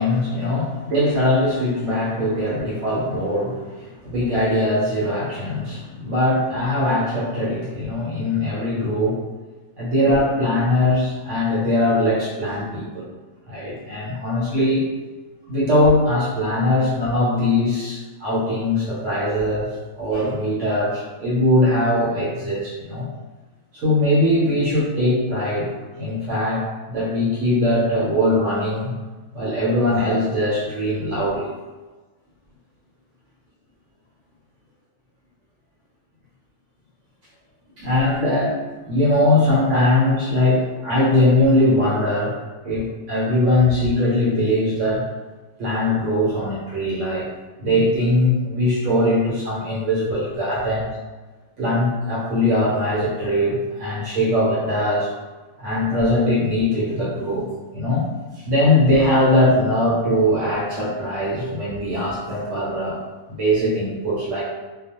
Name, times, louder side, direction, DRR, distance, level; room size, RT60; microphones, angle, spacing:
voice 1, 0.0-9.2 9.8-13.1 13.5-14.9 15.5-23.1 23.7-28.9 29.3-31.5 37.8-38.6 38.8-42.4 42.6-45.0 45.6-47.3 47.6-50.9 51.6-55.1 55.6-57.5 57.7-58.1 58.4-63.0 63.3-64.4, left 1 dB, 65° right, -6 dB, 1.0 m, -21 dB
2.3 x 2.3 x 2.8 m, 1.3 s
omnidirectional pair, 1.4 m